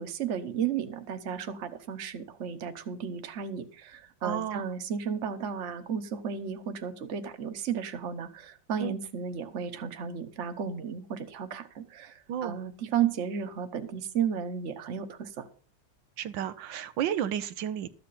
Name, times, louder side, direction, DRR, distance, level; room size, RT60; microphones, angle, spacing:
voice 1, 0.0-15.5, right 7 dB, 45° right, 8 dB, 1.3 m, -33 dB
voice 2, 4.2-4.7 8.8-9.0 12.3-12.6 16.2-17.9, right 10 dB, 85° right, 11 dB, 1.5 m, -32 dB
13.0 x 7.7 x 5.6 m, 0.39 s
omnidirectional pair, 2.0 m